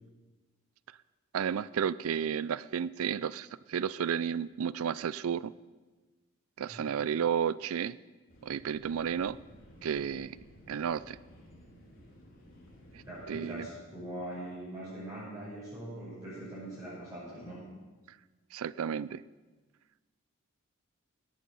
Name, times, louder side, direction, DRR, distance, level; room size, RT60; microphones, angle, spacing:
voice 1, 1.3-5.5 6.6-8.0 8.4-9.4 9.8-10.4 10.7-11.2 12.9-13.7 18.5-19.2, right 7 dB, 80° right, 19 dB, 0.4 m, -32 dB
sound 1, 8.3-13.4, equal, 40° left, 3.6 m, -55 dB
voice 2, 13.1-17.7, right 1 dB, 15° right, -10 dB, 6.6 m, -42 dB
18.0 x 9.2 x 7.0 m, 1.2 s
head